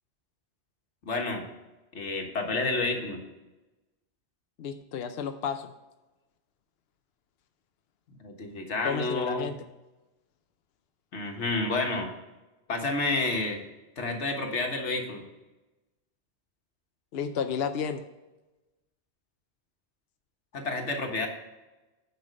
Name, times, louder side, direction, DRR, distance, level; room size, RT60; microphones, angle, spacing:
voice 1, 1.0-1.5 1.9-3.2 8.2-9.5 11.1-12.1 12.7-13.6 14.0-15.2 20.5-21.3, left 2 dB, 90° left, 3 dB, 1.7 m, -30 dB
voice 2, 4.6-5.7 8.8-9.6 17.1-18.0, left 7 dB, 65° left, 7 dB, 0.8 m, -31 dB
9.5 x 5.7 x 5.2 m, 1.1 s
omnidirectional pair, 1.1 m